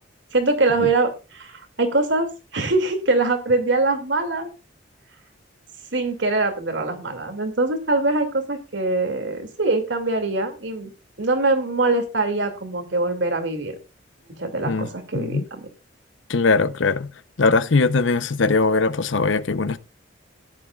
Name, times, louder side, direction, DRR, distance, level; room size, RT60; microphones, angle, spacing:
voice 1, 0.3-4.5 5.9-10.9 11.2-13.7 14.4-15.7, right 2 dB, 70° right, 2.4 m, -23 dB
voice 2, 16.3-17.1 17.4-19.8, left 3 dB, 80° left, 0.8 m, -20 dB
15.5 x 10.5 x 2.4 m
head